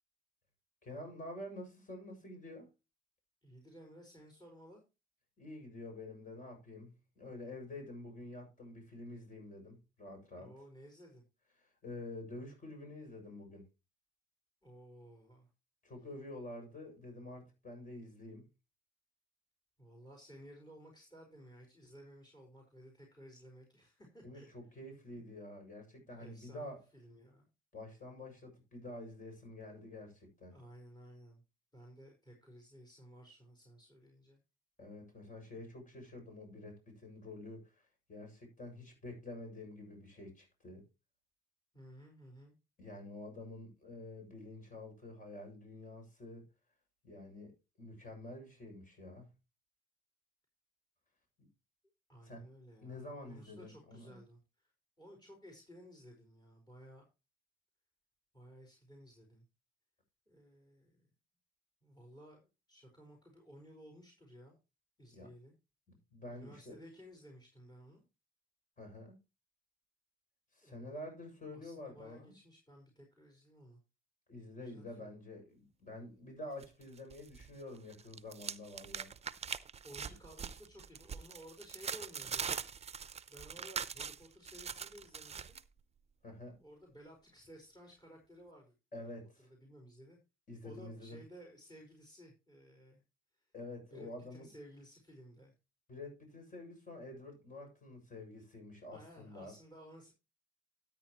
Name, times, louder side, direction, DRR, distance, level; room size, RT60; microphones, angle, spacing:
voice 1, 0.8-2.7 5.4-10.5 11.6-13.7 15.8-18.4 24.2-26.8 27.7-30.6 34.8-37.8 38.1-40.8 42.8-46.5 47.0-49.3 52.2-52.4 52.8-54.2 65.1-65.3 65.9-66.8 68.8-69.2 70.5-72.4 74.3-79.1 86.2-86.6 88.9-89.5 90.5-91.2 93.5-94.5 95.9-99.5, left 2 dB, 40° left, 7.3 m, -48 dB
voice 2, 3.4-4.8 10.3-11.2 14.6-15.5 19.8-24.5 25.1-25.2 26.2-27.5 30.5-31.4 31.7-34.4 41.7-42.5 52.1-54.7 55.0-57.0 58.3-59.4 60.3-61.1 61.8-64.5 65.0-65.5 66.3-68.0 70.6-71.0 71.5-73.8 74.6-75.1 79.8-82.5 83.3-85.6 86.6-89.1 89.6-90.2 90.6-93.0 93.3-93.4 93.9-95.5 98.9-100.1, equal, 20° left, 5.0 m, -56 dB
sound 1, 76.6-77.5 77.8-85.6, right 6 dB, 30° right, 0.7 m, -42 dB
13.0 x 9.2 x 3.1 m
cardioid pair, 90°, 20 cm